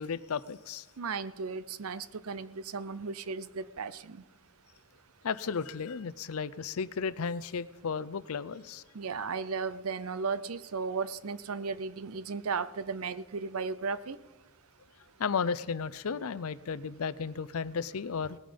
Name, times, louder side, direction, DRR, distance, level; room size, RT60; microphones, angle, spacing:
voice 1, 0.0-0.9 5.2-8.8 15.2-18.4, left 5 dB, 75° left, 17 dB, 0.5 m, -34 dB
voice 2, 1.0-4.2 8.9-14.2, right 5 dB, 75° right, 15 dB, 0.6 m, -35 dB
18.5 x 9.0 x 5.2 m, 1.1 s
head